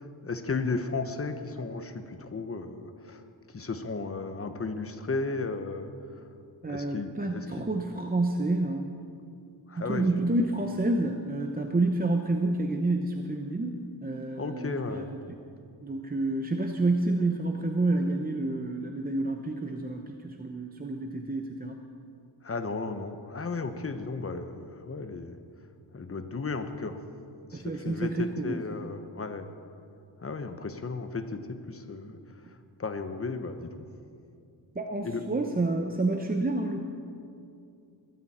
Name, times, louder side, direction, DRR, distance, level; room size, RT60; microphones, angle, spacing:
voice 1, 0.0-3.2 3.5-6.2 6.7-7.7 9.7-10.2 14.4-15.1 22.4-25.4 25.9-27.0 27.5-29.5 30.2-32.2 32.8-33.9 35.0-35.2, left 3 dB, 30° left, 8 dB, 1.0 m, -34 dB
voice 2, 6.6-8.9 9.8-15.2 15.8-21.8 27.5-28.6 34.7-36.8, right 2 dB, 20° right, 3 dB, 0.8 m, -29 dB
22.0 x 13.5 x 4.3 m, 2.5 s
wide cardioid pair, 130°, 43 cm